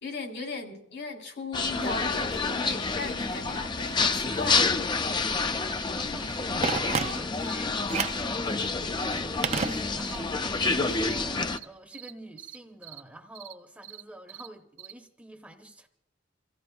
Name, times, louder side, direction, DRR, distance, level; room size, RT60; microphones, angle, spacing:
voice 1, 0.0-4.6, left 3 dB, 85° left, 3.7 m, -37 dB
sound 1, 1.5-11.6, left 3 dB, 25° left, 0.4 m, -28 dB
sound 2, 2.6-2.7 3.0-3.1 3.5-3.6 3.9-4.0 4.3-4.4 4.7-4.9 5.2-5.4 5.7-5.9 6.2-6.4 6.7-7.5 7.9-8.1 8.5-8.7 9.0-9.2 9.5-9.7 10.0-10.2 10.5-10.7 11.0-11.2 11.5-11.7 11.9-12.1 12.4-12.6 12.8-13.0 13.3-13.5 13.8-14.0 14.3-14.5 14.8-14.9, right 12 dB, 90° right, 0.9 m, -45 dB
voice 2, 4.9-15.9, right 1 dB, 10° right, 0.8 m, -48 dB
Telephone, 6.6-7.5 7.9-8.3 9.4-10.3 10.6-10.7, right 5 dB, 35° right, 0.5 m, -30 dB
29.0 x 15.5 x 2.3 m
head